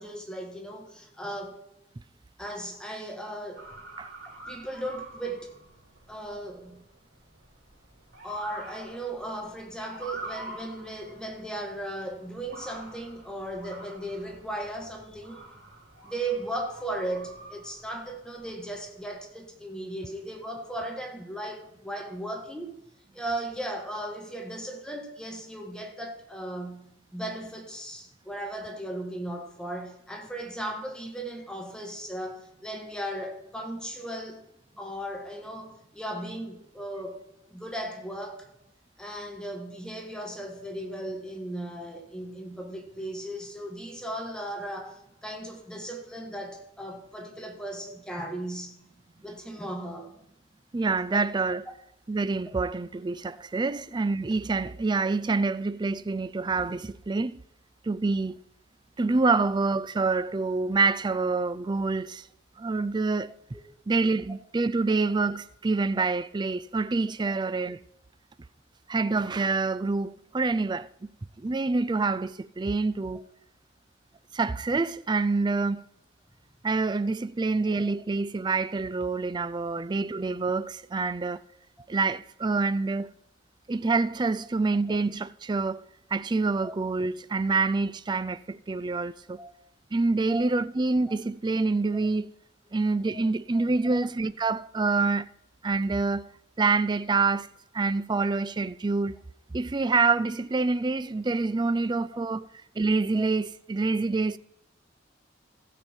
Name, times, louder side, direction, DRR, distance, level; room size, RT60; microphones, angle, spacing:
voice 1, 0.0-1.6 2.4-3.7 4.4-5.5 6.1-6.8 8.2-15.4 16.0-22.7 23.1-34.4 34.8-37.2 37.5-38.5 39.0-48.8 49.2-50.1 63.7-63.8 66.0-66.1 67.2-67.4 77.8-77.9 86.6-86.7 89.4-89.6 90.3-90.5 91.1-91.2 91.9-92.1 93.1-93.3 93.5-94.0 101.0-101.1 102.0-102.1 103.1-103.3, right 1 dB, 5° left, 1.6 m, -37 dB
Motor vehicle (road) / Siren, 3.6-19.1, right 2 dB, 65° right, 4.6 m, -46 dB
voice 2, 50.7-51.6 52.1-57.4 57.8-58.4 59.0-62.2 62.6-63.3 63.9-67.8 68.9-71.1 71.4-73.2 74.3-75.8 76.6-81.4 81.9-83.1 83.7-85.8 86.1-89.4 89.9-92.3 92.7-95.3 95.6-96.3 96.6-97.5 97.7-99.2 99.5-102.4 102.8-104.4, right 3 dB, 25° right, 0.4 m, -26 dB
15.5 x 7.1 x 4.5 m
head